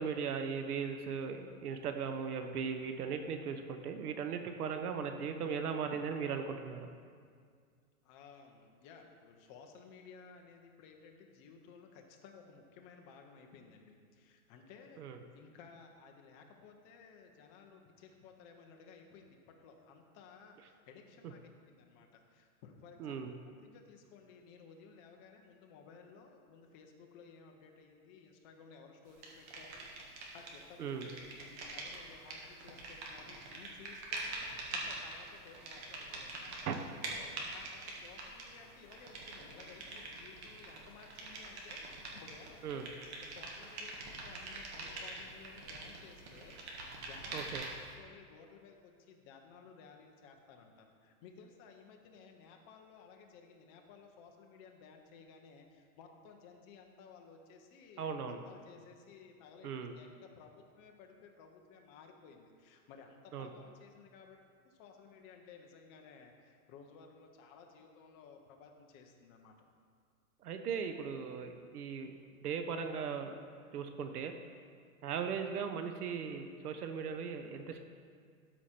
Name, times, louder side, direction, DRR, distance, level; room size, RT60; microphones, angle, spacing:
voice 1, 0.0-6.9 15.0-15.2 23.0-23.3 30.8-31.1 36.6-36.7 42.6-42.9 47.3-47.6 58.0-58.4 59.6-60.0 63.3-63.5 70.4-73.3 73.7-74.3 75.0-77.8, right 6 dB, 80° right, 6 dB, 1.0 m, -38 dB
voice 2, 8.0-15.0 15.3-23.2 23.6-34.4 34.7-36.7 37.1-47.4 48.0-59.7 60.0-64.4 64.6-69.5, left 5 dB, 20° left, 3 dB, 0.6 m, -57 dB
sound 1, 29.2-30.6 30.9-47.9, right 2 dB, 45° right, 1.8 m, -45 dB
12.5 x 5.0 x 4.3 m, 2.1 s
hypercardioid pair, 155°, 44 cm